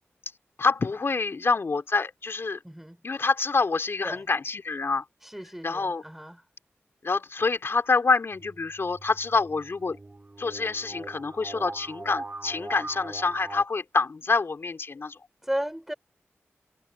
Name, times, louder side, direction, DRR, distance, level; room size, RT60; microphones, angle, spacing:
voice 1, 0.6-2.6 3.0-5.0 5.6-6.0 7.0-10.0 10.4-15.2, left 4 dB, 55° left, 3.4 m, -26 dB
voice 2, 2.6-3.0 4.0-4.3 5.2-6.4 15.4-15.9, equal, 5° right, 4.9 m, -34 dB
sound 1, 8.3-13.6, right 2 dB, 35° right, 4.4 m, -41 dB
wide cardioid pair, 90°, 5 cm